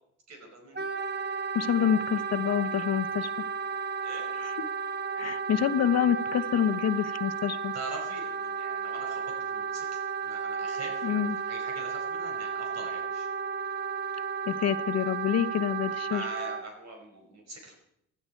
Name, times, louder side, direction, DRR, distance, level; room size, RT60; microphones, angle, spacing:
voice 1, 0.3-0.9 4.0-4.3 7.7-13.3 16.0-17.7, right 2 dB, 60° right, 3 dB, 5.4 m, -43 dB
Wind instrument woodwind instrument, 0.7-16.6, right 6 dB, 35° right, 1.3 m, -33 dB
voice 2, 1.5-3.3 5.2-7.7 11.0-11.4 14.5-16.2, left 9 dB, 60° left, 11 dB, 0.9 m, -27 dB
19.5 x 12.5 x 4.5 m, 0.74 s
cardioid pair, 90°, 30 cm